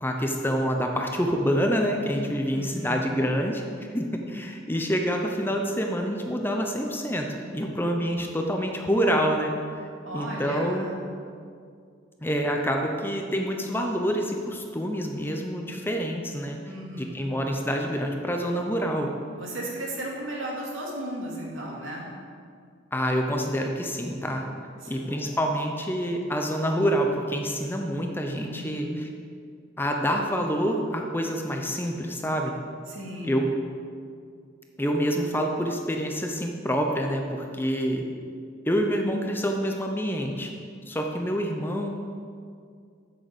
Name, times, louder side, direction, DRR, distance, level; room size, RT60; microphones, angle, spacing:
voice 1, 0.0-3.6 3.9-9.5 9.8-9.9 10.1-10.9 12.2-16.6 17.0-19.1 22.9-24.5 24.9-29.1 29.8-32.5 33.2-33.5 34.8-38.1 38.6-40.5 40.9-42.2, equal, 10° left, 2 dB, 0.7 m, -27 dB
voice 2, 2.5-3.2 10.0-10.9 16.7-17.2 19.3-22.1 24.8-25.2 28.4-29.0 32.9-33.4, right 1 dB, 80° right, -3 dB, 2.4 m, -35 dB
8.2 x 6.6 x 7.8 m, 2.3 s
head